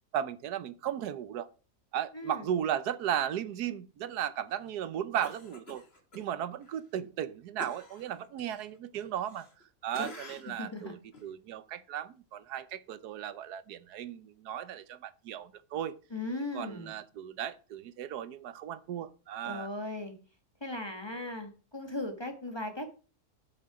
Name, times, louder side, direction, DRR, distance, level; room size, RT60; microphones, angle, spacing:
voice 1, 0.1-1.5 1.9-5.8 6.1-9.5 9.8-16.0 16.5-19.7, right 10 dB, 85° right, 1.3 m, -36 dB
voice 2, 2.1-2.5 10.5-10.9 16.1-16.9 19.4-20.2 20.6-22.9, left 2 dB, 15° left, 1.4 m, -38 dB
Cough, 5.2-6.2 6.6-6.8 7.6-9.6 9.9-10.6 11.1-11.3, left 2 dB, 40° left, 2.3 m, -47 dB
12.5 x 6.6 x 4.8 m
omnidirectional pair, 1.6 m